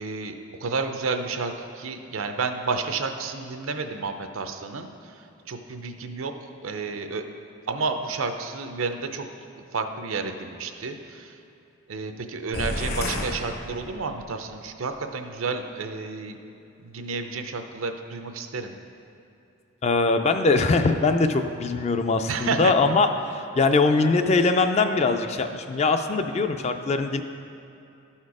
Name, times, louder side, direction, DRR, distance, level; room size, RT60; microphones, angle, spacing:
voice 1, 0.0-6.3 6.6-7.2 7.7-9.3 9.7-11.3 11.9-16.4 16.8-18.7 22.3-22.7, right 4 dB, 80° right, 7 dB, 0.6 m, -31 dB
sound 1, 12.5-14.4, left 1 dB, 50° left, 0.8 m, -31 dB
voice 2, 19.8-27.2, left 3 dB, 30° left, 7 dB, 0.3 m, -22 dB
11.5 x 4.4 x 4.8 m, 2.8 s
head